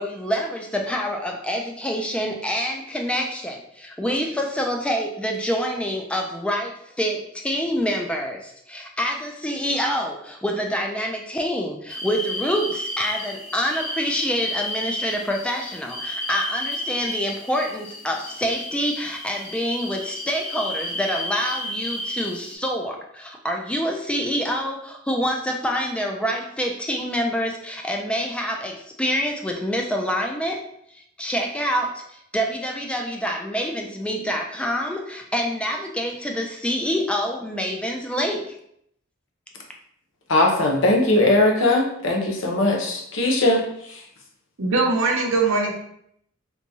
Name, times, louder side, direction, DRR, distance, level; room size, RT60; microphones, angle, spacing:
voice 1, 0.0-38.6, equal, 5° left, 2 dB, 0.3 m, -26 dB
sound 1, 11.9-22.5, left 1 dB, 30° left, 0.8 m, -32 dB
voice 2, 40.3-44.0, left 2 dB, 65° left, 1 dB, 0.7 m, -20 dB
voice 3, 44.6-45.7, right 3 dB, 75° right, 1 dB, 0.7 m, -21 dB
3.4 x 2.9 x 2.7 m, 0.72 s
head